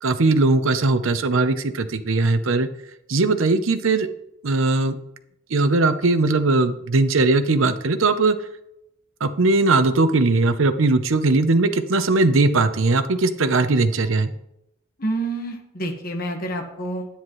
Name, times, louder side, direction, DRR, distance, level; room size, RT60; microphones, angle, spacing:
voice 1, 0.0-2.7 3.1-4.1 4.4-5.0 5.5-8.4 9.2-14.3, right 3 dB, 75° right, 11 dB, 0.7 m, -19 dB
voice 2, 15.0-17.1, right 2 dB, 45° left, 2 dB, 1.5 m, -28 dB
10.0 x 9.2 x 3.2 m, 0.81 s
head